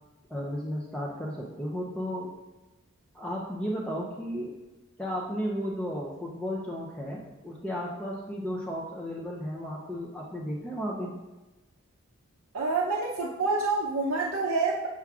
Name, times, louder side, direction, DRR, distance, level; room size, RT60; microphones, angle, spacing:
voice 1, 0.3-2.3 3.1-4.5 5.0-11.1, equal, 5° left, -4 dB, 0.4 m, -34 dB
voice 2, 12.5-14.9, right 3 dB, 75° right, -3 dB, 0.6 m, -27 dB
7.2 x 5.7 x 2.4 m, 1.1 s
head